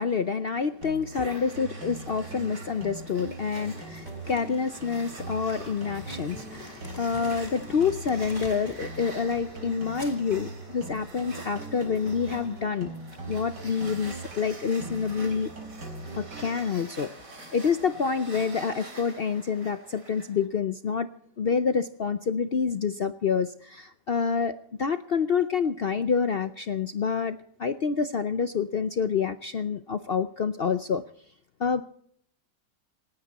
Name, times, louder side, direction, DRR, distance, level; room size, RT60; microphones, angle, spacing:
voice 1, 0.0-12.9 13.3-15.5 16.2-17.1 17.5-21.1 21.4-31.0 31.6-31.8, left 6 dB, 65° left, 11 dB, 0.5 m, -27 dB
sound 1, 0.8-16.8, right 2 dB, 90° right, 4.9 m, -41 dB
sound 2, 1.1-20.5, right 2 dB, 50° right, 3.5 m, -46 dB
Crumpling crinkling, 3.5-8.9 9.2-11.2, left 2 dB, 15° left, 3.6 m, -49 dB
27.5 x 9.7 x 4.1 m, 0.63 s
omnidirectional pair, 1.9 m